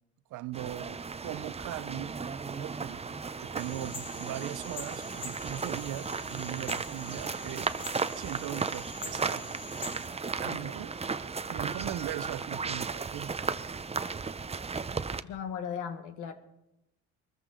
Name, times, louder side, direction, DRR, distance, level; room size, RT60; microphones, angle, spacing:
voice 1, 0.3-3.1 3.4-7.7 8.1-9.5 10.4-10.9 11.5-13.4, right 13 dB, 85° right, 0.7 m, -39 dB
sound 1, 0.5-15.2, right 4 dB, 20° right, 0.6 m, -35 dB
sound 2, 3.6-10.1, left 3 dB, 55° left, 3.4 m, -45 dB
voice 2, 10.5-10.9 15.2-16.3, left 7 dB, 90° left, 1.7 m, -38 dB
22.5 x 14.0 x 3.8 m
cardioid pair, 90°, 30 cm